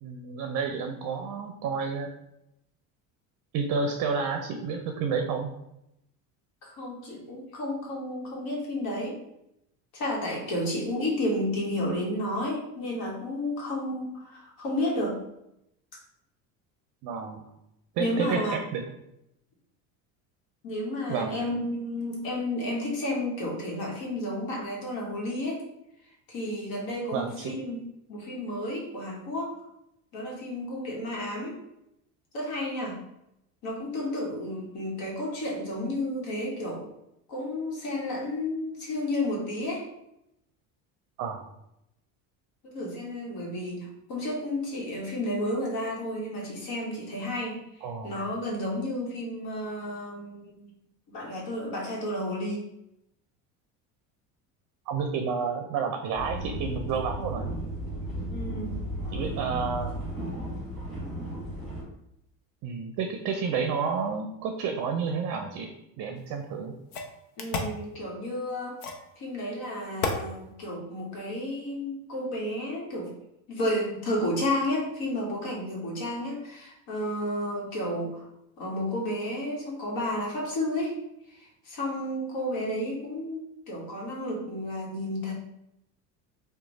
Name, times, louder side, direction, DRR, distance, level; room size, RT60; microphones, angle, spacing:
voice 1, 0.0-2.1 3.5-5.5 17.0-17.4 18.0-18.8 21.1-21.4 27.1-27.6 41.2-41.4 47.8-48.1 54.9-57.5 59.1-59.9 62.6-65.7 66.0-66.7, right 5 dB, 50° right, 5 dB, 0.5 m, -30 dB
voice 2, 6.6-9.2 9.9-15.2 18.0-18.6 20.6-25.6 26.3-27.8 28.1-29.6 30.1-31.6 32.3-33.0 33.6-36.8 37.3-39.9 42.6-47.6 48.0-50.6 51.1-52.6 58.3-58.8 67.4-68.8 69.2-73.1 73.5-78.2 78.6-81.0 81.3-85.3, left 1 dB, 55° left, -2 dB, 1.2 m, -32 dB
sound 1, 56.2-61.8, right 1 dB, ahead, 1.5 m, -34 dB
sound 2, 66.2-66.3 66.9-67.8 68.8-69.1 70.0-70.2, left 4 dB, 90° left, 0.7 m, -31 dB
3.0 x 2.2 x 3.9 m, 0.83 s
supercardioid pair, 100°, 42 cm